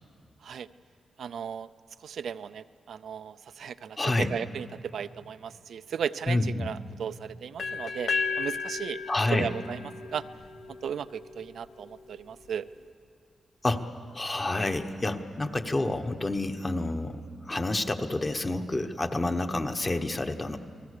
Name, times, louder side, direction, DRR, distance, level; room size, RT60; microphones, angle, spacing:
voice 1, 1.2-1.7 2.0-8.1 8.4-9.0 9.3-9.8 10.1-10.2 10.7-12.7, right 7 dB, 75° right, 11 dB, 0.5 m, -35 dB
voice 2, 4.0-4.3 6.3-6.7 9.1-9.5 13.6-13.9 14.1-20.6, left 2 dB, 25° left, 6 dB, 1.1 m, -28 dB
sound 1, 7.6-11.5, left 5 dB, 70° left, 1.3 m, -34 dB
30.0 x 19.0 x 6.7 m, 2.5 s
wide cardioid pair, 140°, 0 cm